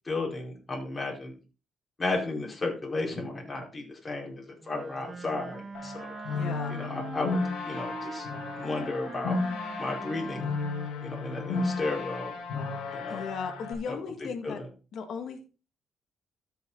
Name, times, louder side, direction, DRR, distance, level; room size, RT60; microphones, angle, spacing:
voice 1, 0.0-1.4 2.0-6.4 6.7-7.4 7.7-8.3 8.5-9.4 9.8-10.5 11.0-12.4 12.9-13.2 13.9-14.7, left 2 dB, 25° left, -1 dB, 4.7 m, -34 dB
Wind instrument woodwind instrument, 4.6-11.9, right 4 dB, 35° right, 2.1 m, -43 dB
sound 1, 5.7-13.7, left 3 dB, 85° left, 3.0 m, -34 dB
voice 2, 6.3-6.8 13.1-14.6 14.9-15.4, left 6 dB, 65° left, 6 dB, 2.1 m, -36 dB
13.0 x 6.9 x 3.9 m, 0.33 s
cardioid pair, 90°, 0 cm